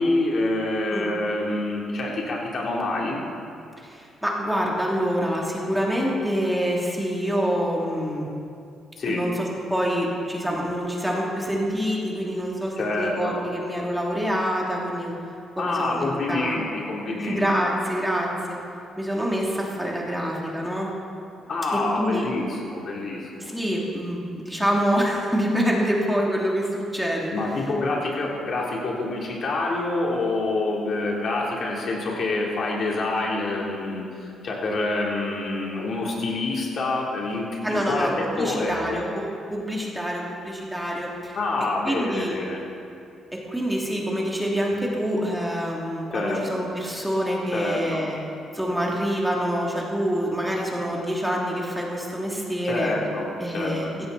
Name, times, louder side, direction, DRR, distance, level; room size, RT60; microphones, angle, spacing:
voice 1, 0.0-3.2 9.0-9.2 12.8-13.4 15.6-17.4 21.5-23.5 27.3-39.0 41.3-42.6 46.1-46.4 47.5-48.0 52.7-53.3 53.5-53.9, left 2 dB, 55° left, -2 dB, 3.6 m, -27 dB
voice 2, 3.8-8.3 9.1-15.1 15.6-16.6 17.1-18.6 19.0-20.9 21.7-22.3 23.4-27.3 37.6-39.2 39.5-41.4 41.8-42.4 43.3-48.2 48.5-53.0 53.4-53.9, equal, 5° right, -3 dB, 3.0 m, -26 dB
16.5 x 15.5 x 4.3 m, 2.5 s
cardioid pair, 90°, 0 cm